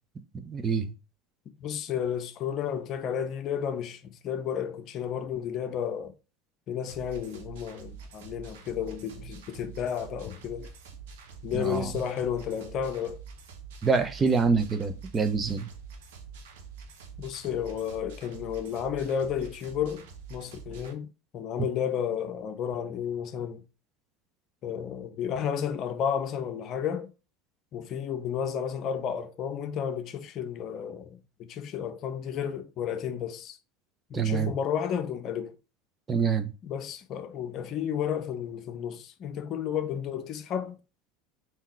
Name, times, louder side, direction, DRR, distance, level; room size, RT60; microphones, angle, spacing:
voice 1, 0.3-0.9 11.5-11.9 13.8-15.7 34.1-34.5 36.1-36.5, right 5 dB, 25° right, 0.7 m, -26 dB
voice 2, 1.6-6.1 6.7-10.7 11.4-13.2 17.2-23.6 24.6-27.1 27.7-33.6 34.1-35.6 36.6-40.8, left 8 dB, 50° left, 0.6 m, -32 dB
sound 1, 6.9-20.9, right 6 dB, 75° right, 1.0 m, -46 dB
3.8 x 2.9 x 4.4 m
hypercardioid pair, 90°, 0 cm